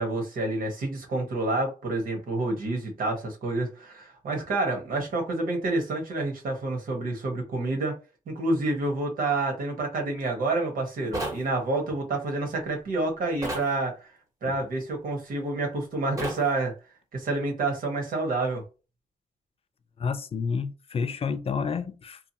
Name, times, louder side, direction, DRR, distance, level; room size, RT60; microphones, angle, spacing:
voice 1, 0.0-8.0 8.3-13.9 14.4-16.7 17.1-18.6, right 2 dB, 80° right, 1.1 m, -28 dB
sound 1, 11.1-11.4 13.4-13.7 16.2-16.4, right 1 dB, 25° right, 0.9 m, -31 dB
voice 2, 20.0-22.3, left 5 dB, 45° left, 0.4 m, -30 dB
2.9 x 2.2 x 2.7 m
wide cardioid pair, 110°, 14 cm